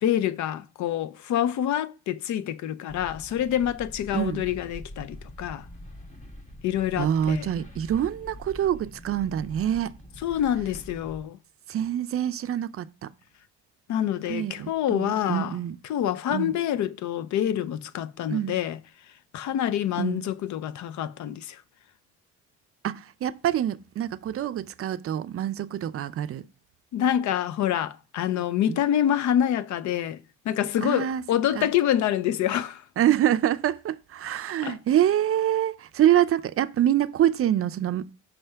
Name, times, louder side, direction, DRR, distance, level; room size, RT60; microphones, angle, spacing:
voice 1, 0.0-5.6 6.6-7.5 10.2-11.4 13.9-15.6 15.8-18.8 19.3-21.6 26.9-32.8 34.6-34.8, left 10 dB, 70° left, 0.5 m, -26 dB
sound 1, 2.9-11.2, left 1 dB, 25° left, 1.2 m, -44 dB
voice 2, 4.1-4.4 7.0-10.0 11.7-13.1 14.3-15.8 16.3-16.6 18.3-18.6 20.0-20.2 22.8-26.4 28.7-28.8 30.8-31.2 31.5-31.7 33.0-38.1, right 11 dB, 50° right, 0.4 m, -26 dB
5.6 x 3.4 x 5.6 m
cardioid pair, 90°, 30 cm